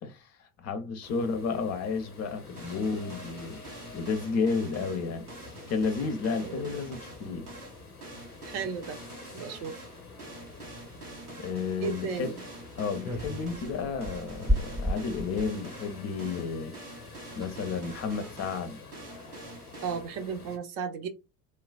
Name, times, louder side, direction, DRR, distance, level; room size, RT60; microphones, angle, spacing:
voice 1, 0.0-3.6 3.9-5.3 5.7-7.5 8.1-8.2 11.4-12.3 12.8-16.7 17.4-18.8, left 5 dB, 35° left, 0.5 m, -32 dB
sound 1, 1.0-20.6, left 3 dB, 90° left, 0.6 m, -48 dB
sound 2, 2.6-20.0, right 2 dB, 90° right, 0.7 m, -46 dB
voice 2, 8.5-9.0 9.3-9.8 11.8-12.4 19.8-21.1, right 6 dB, 50° right, 0.6 m, -34 dB
sound 3, 13.0-15.6 16.8-16.9 17.0-17.1 17.3-17.7 18.1-18.4, equal, 10° right, 0.7 m, -32 dB
3.1 x 2.3 x 2.2 m
figure-of-eight pair, 55°, 44 cm